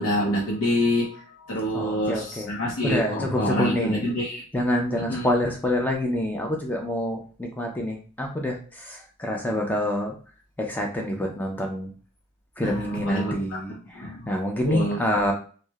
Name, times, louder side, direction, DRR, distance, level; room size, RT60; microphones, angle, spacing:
voice 1, 0.0-4.4 4.9-5.3 12.6-14.3 14.7-15.0, equal, 90° left, -4 dB, 0.6 m, -27 dB
voice 2, 1.7-2.5 2.8-4.0 4.5-10.1 10.6-11.9 12.6-15.3, left 1 dB, 10° left, 1 dB, 0.3 m, -27 dB
2.7 x 2.0 x 2.2 m, 0.40 s
head